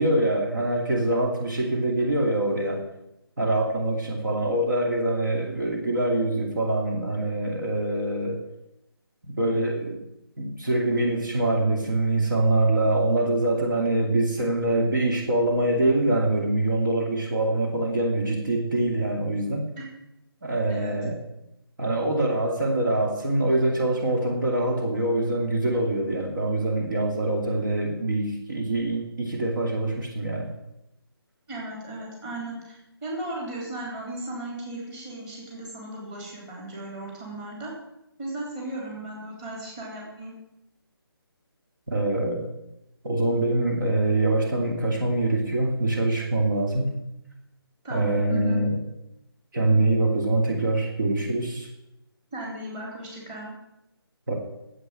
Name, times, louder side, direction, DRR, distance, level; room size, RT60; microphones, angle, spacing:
voice 1, 0.0-2.8 3.4-8.4 9.2-10.0 10.4-19.7 20.4-21.2 21.8-30.5 41.9-42.5 43.0-46.9 47.9-48.7 49.5-51.7 54.3-54.4, right 2 dB, 55° right, 0 dB, 2.6 m, -24 dB
voice 2, 31.5-37.7 38.2-40.3 47.8-48.6 52.3-53.5, right 1 dB, 15° right, -3 dB, 3.5 m, -36 dB
9.8 x 8.2 x 8.9 m, 0.87 s
figure-of-eight pair, 150°, 13 cm